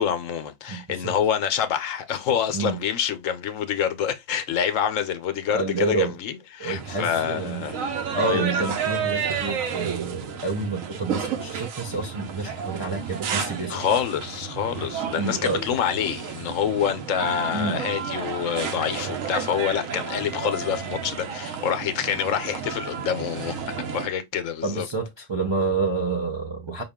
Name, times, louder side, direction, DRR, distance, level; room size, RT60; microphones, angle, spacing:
voice 1, 0.0-8.0 8.2-8.7 13.7-24.9, left 8 dB, 75° left, 1.0 m, -27 dB
voice 2, 0.7-1.1 2.5-2.8 5.5-6.2 6.6-7.6 8.1-13.8 15.2-15.7 17.5-17.8 24.6-26.8, right 4 dB, 40° right, 0.4 m, -28 dB
sound 1, 6.7-24.1, right 6 dB, 80° right, 1.1 m, -31 dB
5.5 x 2.3 x 3.5 m
omnidirectional pair, 1.4 m